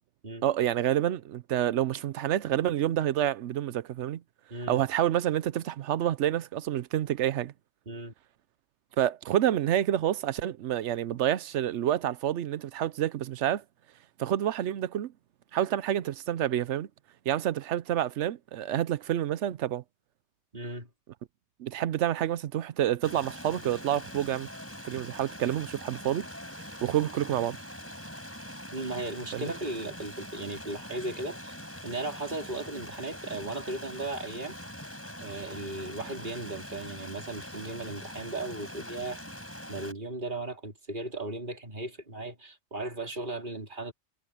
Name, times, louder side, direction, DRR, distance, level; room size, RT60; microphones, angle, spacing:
voice 1, 0.4-4.2 4.7-7.5 9.0-13.6 14.2-15.1 15.5-16.9 17.3-19.8 21.6-24.5 24.8-26.3 26.8-27.6 29.3-29.5, right 11 dB, 90° right, 1.0 m, -28 dB
voice 2, 4.5-4.8 7.9-8.1 20.5-20.9 28.7-31.6 31.8-34.6 35.2-39.2 39.7-43.9, right 2 dB, 45° right, 3.6 m, -36 dB
Stream, 23.0-39.9, equal, 10° left, 4.9 m, -43 dB
omnidirectional pair, 1.2 m